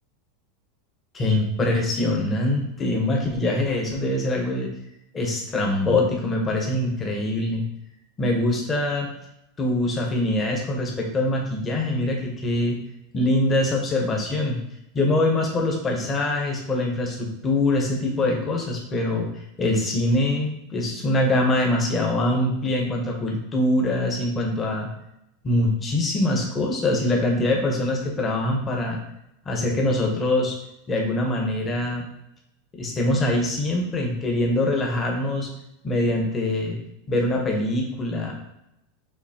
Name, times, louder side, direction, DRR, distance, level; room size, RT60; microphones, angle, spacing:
voice 1, 1.1-4.7 5.1-7.6 8.2-9.1 9.6-12.8 13.1-14.6 14.9-19.3 19.6-24.9 25.4-29.0 29.5-30.6 30.9-32.0 32.7-35.5 35.8-36.8 37.1-38.3, left 1 dB, 15° left, 0 dB, 0.8 m, -23 dB
6.5 x 2.7 x 2.8 m, 0.82 s
supercardioid pair, 170°, 0 cm